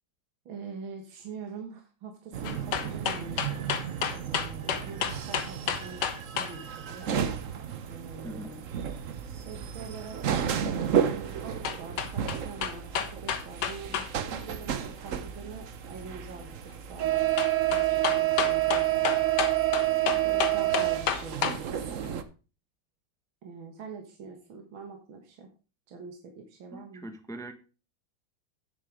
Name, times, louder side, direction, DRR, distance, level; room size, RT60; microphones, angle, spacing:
voice 1, 0.5-7.1 7.8-8.7 9.2-10.5 10.8-17.3 17.7-19.2 20.1-22.0 23.4-25.5 25.9-27.0, right 5 dB, 70° right, 3 dB, 2.3 m, -44 dB
sound 1, 2.3-22.2, right 11 dB, 55° right, 0.9 m, -30 dB
sound 2, 2.4-6.5 11.6-14.1 14.4-14.5 17.4-21.6 22.0-22.1, left 7 dB, 60° left, 1.5 m, -30 dB
voice 2, 8.2-8.6 26.7-27.5, right 1 dB, 5° left, 7 dB, 0.6 m, -42 dB
9.6 x 6.8 x 5.0 m, 0.33 s
omnidirectional pair, 2.3 m